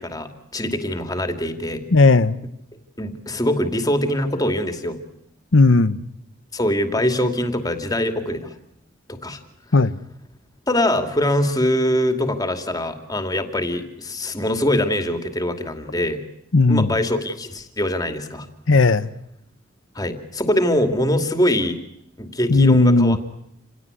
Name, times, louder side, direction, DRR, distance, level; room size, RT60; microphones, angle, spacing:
voice 1, 0.0-1.8 3.0-5.0 6.5-8.5 9.1-9.4 10.7-16.2 16.7-18.5 19.9-21.8 22.2-23.2, left 1 dB, 20° left, 7 dB, 2.5 m, -23 dB
voice 2, 1.9-2.4 5.5-6.0 9.7-9.9 16.5-16.9 18.7-19.1 22.5-23.2, left 3 dB, 80° left, 12 dB, 0.9 m, -15 dB
28.0 x 17.5 x 9.7 m, 0.79 s
head